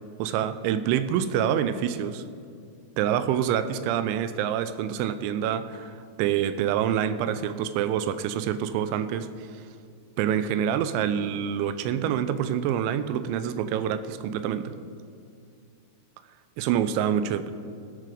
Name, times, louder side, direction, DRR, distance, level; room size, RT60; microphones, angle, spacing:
voice 1, 0.2-2.2 3.0-9.5 10.2-14.7 16.6-17.5, right 9 dB, 85° right, 12 dB, 2.9 m, -26 dB
15.5 x 7.6 x 5.0 m, 2.4 s
omnidirectional pair, 5.4 m